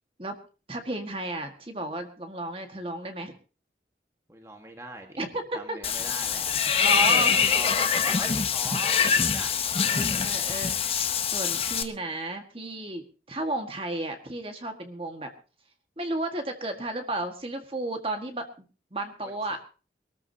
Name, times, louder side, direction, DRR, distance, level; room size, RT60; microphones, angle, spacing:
voice 1, 0.7-3.3 5.2-5.8 6.8-7.3 9.9-10.7 11.2-15.3 16.0-18.6 18.9-19.6, right 2 dB, 30° right, 5 dB, 1.7 m, -33 dB
voice 2, 4.3-5.2 5.5-10.1 19.2-19.3, right 1 dB, 15° right, 3 dB, 1.6 m, -40 dB
Water / Bathtub (filling or washing), 5.8-11.8, left 7 dB, 35° left, 1.1 m, -24 dB
23.5 x 13.5 x 2.8 m, 0.35 s
head